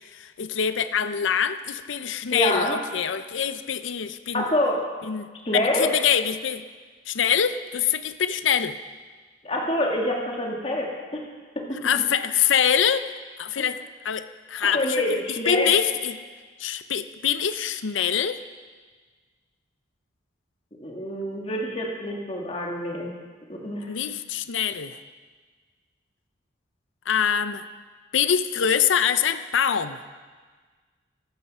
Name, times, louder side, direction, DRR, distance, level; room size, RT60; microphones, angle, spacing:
voice 1, 0.1-4.4 5.1-5.3 5.8-6.6 7.1-8.8 11.8-13.1 13.4-13.8 14.0-15.0 15.3-16.1 16.6-18.4 23.9-25.0 27.1-27.6 28.1-30.0, left 8 dB, 80° left, 11 dB, 0.6 m, -24 dB
voice 2, 2.3-2.8 4.3-4.9 5.5-5.9 9.4-11.2 11.6-11.7 13.6-13.7 14.6-15.7 20.8-23.1 23.5-23.9, left 1 dB, 30° left, 0 dB, 2.4 m, -26 dB
15.5 x 13.0 x 5.6 m, 1.5 s
head